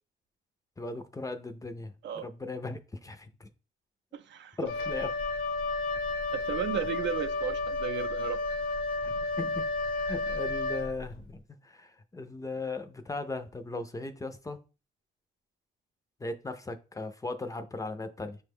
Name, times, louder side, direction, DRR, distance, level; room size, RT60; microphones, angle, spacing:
voice 1, 0.8-3.5 4.6-5.1 9.0-14.6 16.2-18.4, left 3 dB, 15° left, 0.4 m, -38 dB
voice 2, 4.1-4.6 6.3-8.4, right 8 dB, 65° right, 0.5 m, -34 dB
Wind instrument woodwind instrument, 4.7-11.2, left 2 dB, 80° left, 0.9 m, -32 dB
5.6 x 2.2 x 3.4 m
cardioid pair, 90°, 20 cm